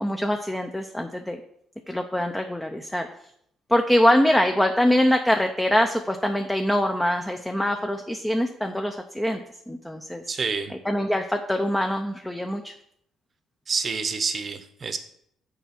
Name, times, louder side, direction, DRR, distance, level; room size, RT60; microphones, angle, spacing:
voice 1, 0.0-1.4 1.9-3.1 3.7-10.2 10.9-12.7, equal, 5° left, 4 dB, 0.5 m, -23 dB
voice 2, 10.3-10.8 13.7-15.0, right 5 dB, 35° right, 9 dB, 0.8 m, -28 dB
6.9 x 4.5 x 5.8 m, 0.70 s
cardioid pair, 120°, 0 cm